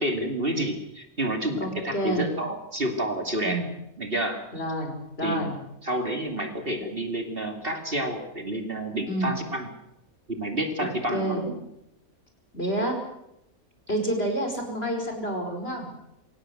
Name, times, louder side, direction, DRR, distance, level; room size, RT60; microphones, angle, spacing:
voice 1, 0.0-3.6 4.0-4.4 5.2-5.5 5.8-9.7 10.3-11.4, right 1 dB, 40° right, 4 dB, 2.9 m, -29 dB
voice 2, 1.6-2.3 3.4-3.7 4.5-5.5 9.1-9.4 10.8-11.5 12.5-13.0 13.9-15.9, right 1 dB, 45° left, 3 dB, 5.3 m, -29 dB
24.0 x 17.5 x 7.9 m, 0.83 s
omnidirectional pair, 1.5 m